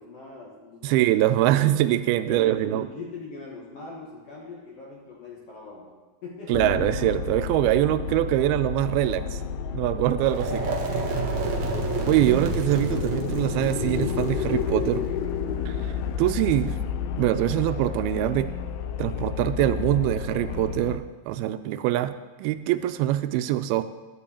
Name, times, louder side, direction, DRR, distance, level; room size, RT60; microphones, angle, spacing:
voice 1, 0.0-1.3 2.2-5.9 6.2-6.9 12.4-13.1, left 4 dB, 60° left, -3 dB, 1.6 m, -41 dB
voice 2, 0.8-2.9 6.5-9.4 9.7-10.9 12.1-15.0 15.7-16.8 17.2-18.5 19.0-22.1 22.4-23.8, right 14 dB, 85° right, 11 dB, 2.4 m, -24 dB
sound 1, 6.5-21.0, left 7 dB, 80° left, 2.1 m, -31 dB
sound 2, 10.2-16.2, right 3 dB, 55° right, 2.5 m, -31 dB
11.0 x 5.4 x 8.4 m, 1.2 s
omnidirectional pair, 4.4 m